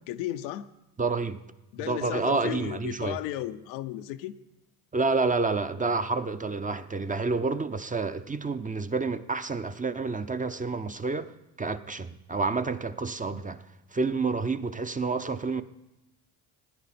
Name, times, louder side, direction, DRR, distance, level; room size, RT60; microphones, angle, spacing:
voice 1, 0.1-0.7 1.7-4.3, left 13 dB, 80° left, 0.7 m, -34 dB
voice 2, 1.0-1.4 1.9-3.2 4.9-11.3 11.6-13.6 13.9-15.6, right 4 dB, 15° right, 0.6 m, -29 dB
17.5 x 9.9 x 4.3 m
hypercardioid pair, 65°, 46 cm